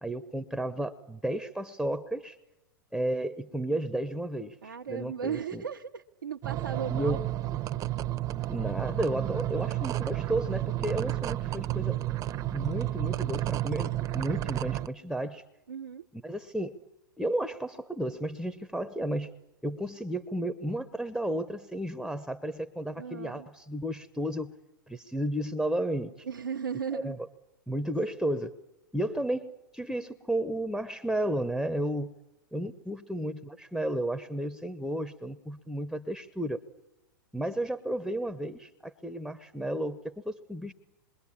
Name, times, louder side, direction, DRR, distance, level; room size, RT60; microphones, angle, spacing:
voice 1, 0.0-2.4 2.9-5.6 6.9-7.3 8.5-12.0 12.5-15.4 16.1-16.8 17.2-19.3 19.6-24.5 24.9-26.3 26.9-27.3 27.7-28.6 28.9-32.1 32.5-36.6 37.3-40.7, right 1 dB, ahead, 11 dB, 0.9 m, -33 dB
voice 2, 4.6-7.2 15.7-16.1 23.0-23.5 26.3-27.2, right 7 dB, 90° right, 1 dB, 1.0 m, -36 dB
sound 1, 6.4-14.9, right 15 dB, 30° right, 0.9 m, -31 dB
26.5 x 23.0 x 8.7 m, 0.96 s
hypercardioid pair, 110°, 11 cm